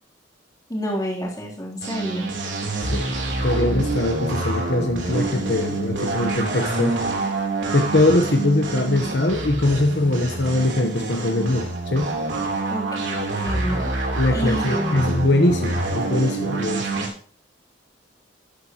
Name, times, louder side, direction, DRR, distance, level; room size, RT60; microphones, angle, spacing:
voice 1, 0.7-2.3 12.7-13.9 14.3-15.2, equal, 20° left, -3 dB, 3.5 m, -29 dB
sound 1, 1.8-17.1, right 2 dB, 90° right, 3.6 m, -26 dB
voice 2, 3.4-7.2 7.7-12.2 14.2-17.0, left 2 dB, 65° left, 4 dB, 1.2 m, -22 dB
13.5 x 9.8 x 3.1 m, 0.42 s
head